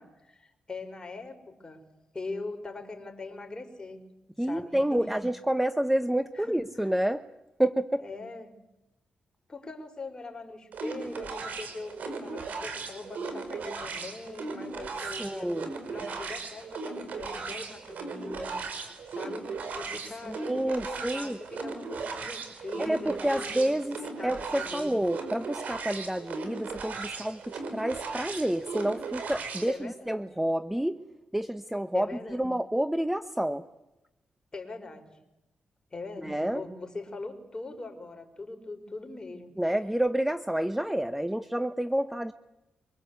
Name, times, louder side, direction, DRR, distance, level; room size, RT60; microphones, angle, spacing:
voice 1, 0.0-1.8 2.1-4.0 4.4-5.2 6.4-6.9 8.0-8.5 9.5-15.5 15.9-23.7 24.2-25.0 29.7-30.3 31.9-32.5 34.5-35.2 35.9-39.5, left 3 dB, 25° left, 5 dB, 5.0 m, -41 dB
voice 2, 4.4-7.2 7.6-8.0 15.2-15.7 20.3-21.4 22.8-24.0 24.2-31.0 31.3-33.7 36.2-36.6 39.6-42.3, right 1 dB, 5° right, 10 dB, 1.0 m, -29 dB
sound 1, 10.7-29.7, right 4 dB, 75° right, 5.1 m, -37 dB
24.5 x 22.5 x 8.3 m, 0.93 s
cardioid pair, 65°, 3 cm